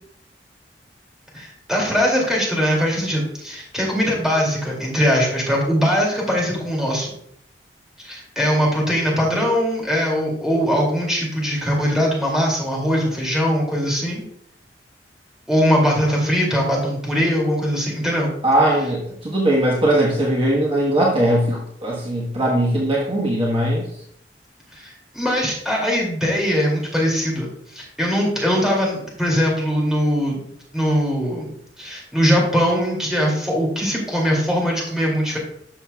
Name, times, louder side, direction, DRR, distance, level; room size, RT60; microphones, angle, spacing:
voice 1, 1.3-7.1 8.0-14.2 15.5-18.3 24.7-30.4 30.7-31.5 31.8-35.4, equal, 5° right, -3 dB, 2.5 m, -21 dB
voice 2, 18.4-23.9, right 1 dB, 30° right, -4 dB, 1.3 m, -19 dB
12.0 x 6.7 x 2.3 m, 0.70 s
head